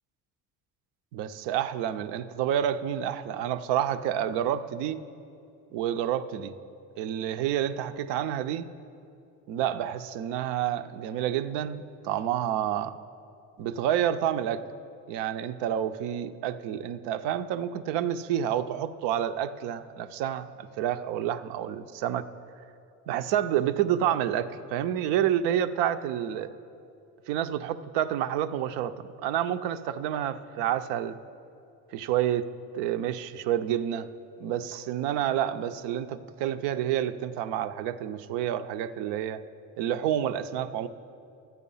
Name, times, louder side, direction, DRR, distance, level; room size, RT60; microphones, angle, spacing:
voice 1, 1.1-5.0 5.7-6.5 7.0-8.7 9.5-12.9 13.6-14.7 15.1-22.3 23.1-26.5 27.3-31.2 31.9-32.5 32.7-34.1 34.4-39.4 39.8-40.9, right 10 dB, 85° right, 11 dB, 0.6 m, -29 dB
12.5 x 8.2 x 5.5 m, 2.6 s
supercardioid pair, 85°, 41 cm